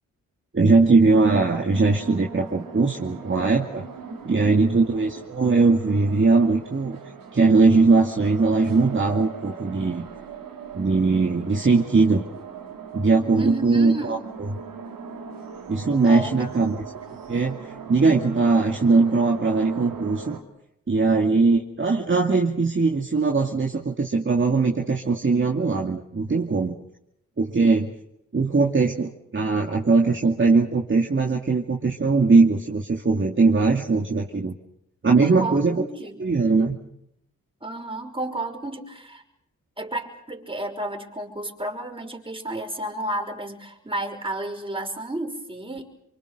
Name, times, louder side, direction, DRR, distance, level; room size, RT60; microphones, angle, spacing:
voice 1, 0.5-3.9 4.2-7.0 7.3-10.0 10.7-12.3 12.9-14.5 15.7-16.8 17.3-17.6 17.9-20.4 20.9-26.7 27.4-27.9 28.3-34.5 35.0-35.8 36.2-36.7, right 3 dB, 35° right, 0 dB, 2.5 m, -20 dB
sound 1, 1.7-20.4, right 6 dB, 80° right, 3.3 m, -40 dB
voice 2, 4.1-4.7 13.3-14.3 16.0-16.4 35.2-36.4 37.6-39.2 39.8-45.9, right 1 dB, 15° right, 3 dB, 5.8 m, -32 dB
26.5 x 24.0 x 6.7 m, 0.79 s
supercardioid pair, 50°, 33 cm